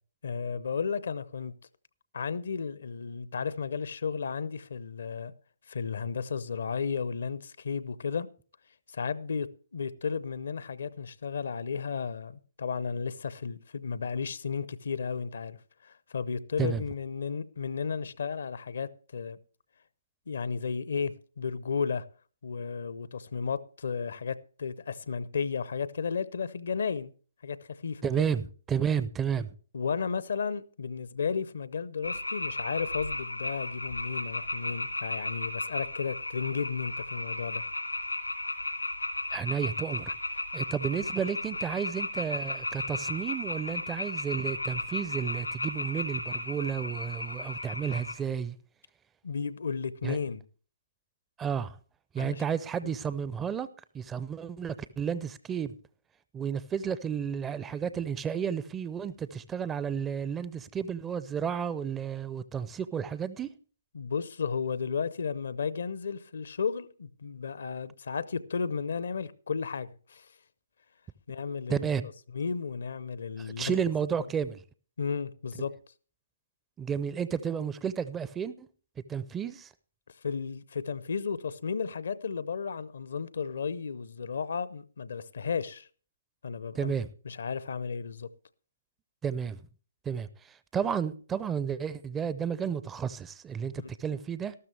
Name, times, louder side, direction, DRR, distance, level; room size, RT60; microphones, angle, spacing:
voice 1, 0.2-1.5 2.1-5.3 5.7-8.3 8.9-15.6 15.8-19.4 20.3-22.0 22.4-27.1 27.4-28.3 29.7-37.6 49.2-50.4 52.2-52.4 52.8-53.0 63.9-70.3 71.3-71.9 72.3-73.8 75.0-75.7 80.2-85.9 86.4-86.9 87.2-88.3, left 5 dB, 60° left, 0.7 m, -33 dB
voice 2, 28.0-29.5 39.3-40.1 40.5-48.6 50.0-50.2 51.4-51.8 52.1-53.7 53.9-55.7 56.3-63.5 71.7-72.0 73.4-74.6 76.8-78.7 79.1-79.7 86.8-87.1 89.2-89.6 90.1-94.5, right 7 dB, 10° right, 0.5 m, -32 dB
sound 1, 32.0-48.1, left 2 dB, 85° left, 2.6 m, -35 dB
13.5 x 12.5 x 3.3 m
figure-of-eight pair, 135°, 0 cm